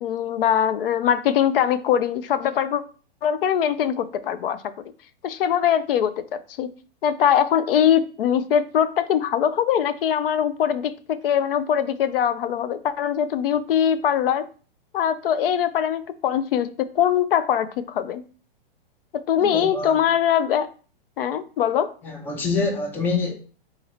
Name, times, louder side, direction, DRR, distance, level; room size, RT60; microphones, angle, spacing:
voice 1, 0.0-2.8 3.2-4.6 5.2-6.7 7.0-14.5 14.9-18.2 19.3-20.7 21.2-21.9, left 9 dB, 70° left, 0.5 m, -22 dB
voice 2, 19.4-20.0 22.0-23.3, left 4 dB, 5° left, 0.4 m, -26 dB
3.8 x 2.9 x 4.1 m
hypercardioid pair, 155°, 29 cm